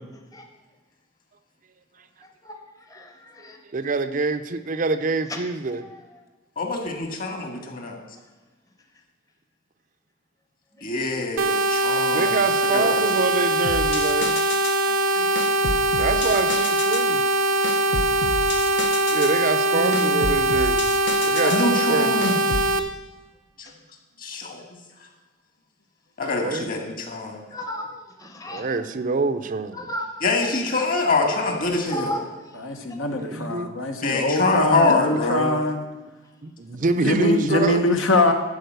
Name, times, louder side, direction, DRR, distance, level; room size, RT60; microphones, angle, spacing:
voice 1, 2.9-3.6 5.7-6.0 14.8-15.3 27.5-27.9 28.2-28.6 29.7-30.1 31.9-32.2, equal, 20° left, 3 dB, 0.8 m, -34 dB
voice 2, 3.7-5.9 12.1-14.4 16.0-17.2 19.1-20.9 21.2-22.3 26.4-27.0 28.5-29.9 33.1-33.7 36.4-37.8, right 3 dB, 40° right, 10 dB, 0.5 m, -26 dB
voice 3, 6.6-8.0 10.8-12.3 12.7-13.0 19.7-20.3 21.4-22.4 23.6-23.7 24.2-24.6 26.2-27.4 30.2-32.1 34.0-35.5, left 3 dB, 45° left, 3 dB, 1.9 m, -25 dB
sound 1, 11.4-22.8, right 1 dB, 85° right, 0.8 m, -22 dB
sound 2, 13.6-14.8 15.4-17.1 17.6-19.4 19.9-21.7 22.2-22.7, left 3 dB, 60° left, 0.8 m, -31 dB
voice 4, 32.6-35.9 37.0-38.3, left 1 dB, 80° left, 4 dB, 1.2 m, -22 dB
11.0 x 4.9 x 7.9 m, 1.2 s
head